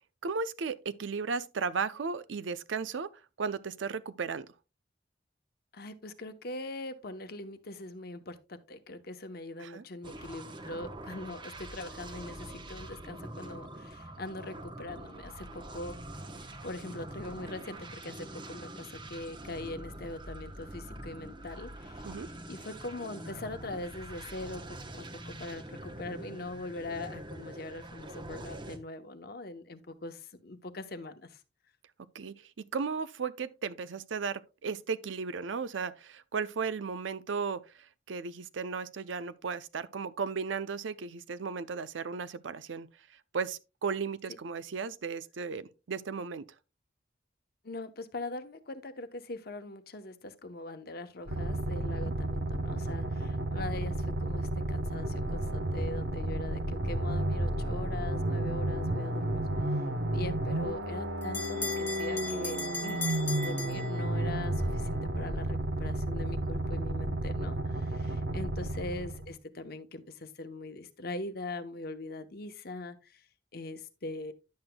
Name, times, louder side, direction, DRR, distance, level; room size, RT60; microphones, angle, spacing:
voice 1, 0.2-3.1 3.4-4.5 9.6-9.8 22.0-22.3 32.1-42.9 43.3-46.4 51.9-52.1 68.0-68.2, right 5 dB, 90° right, 0.5 m, -35 dB
voice 2, 5.7-16.0 16.6-22.2 22.5-31.4 47.6-59.4 60.1-73.2 73.5-74.3, left 2 dB, 55° left, 0.9 m, -42 dB
sound 1, 10.0-28.8, right 1 dB, 25° right, 0.9 m, -44 dB
sound 2, 51.3-69.3, right 1 dB, 65° right, 0.9 m, -32 dB
Bell, 60.4-64.5, left 2 dB, 10° left, 1.1 m, -39 dB
10.5 x 7.8 x 2.2 m
head